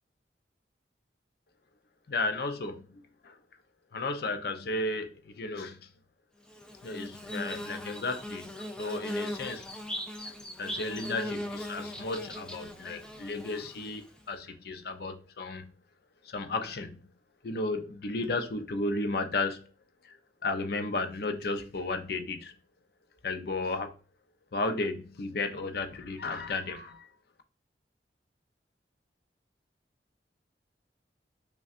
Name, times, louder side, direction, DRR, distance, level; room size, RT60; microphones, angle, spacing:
voice 1, 2.1-3.4 3.9-5.9 6.8-9.7 10.2-15.7 16.2-17.1 17.4-19.7 20.0-22.6 23.2-23.9 24.5-27.1, left 3 dB, 60° left, 0.5 m, -34 dB
Bird / Buzz, 6.5-14.2, left 1 dB, 5° left, 0.3 m, -39 dB
5.2 x 2.3 x 2.4 m
head